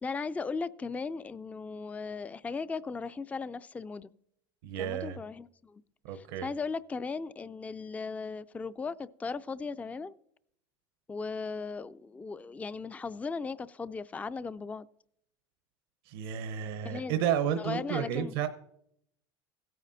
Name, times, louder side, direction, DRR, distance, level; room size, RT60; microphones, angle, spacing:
voice 1, 0.0-4.1 4.8-5.8 6.1-10.1 11.1-14.9 16.8-17.2 17.6-18.3, left 4 dB, 10° left, 0.3 m, -37 dB
voice 2, 4.6-5.2 6.0-6.5 16.0-18.5, right 9 dB, 80° right, 0.8 m, -32 dB
16.0 x 9.2 x 2.7 m
supercardioid pair, 100°, 12 cm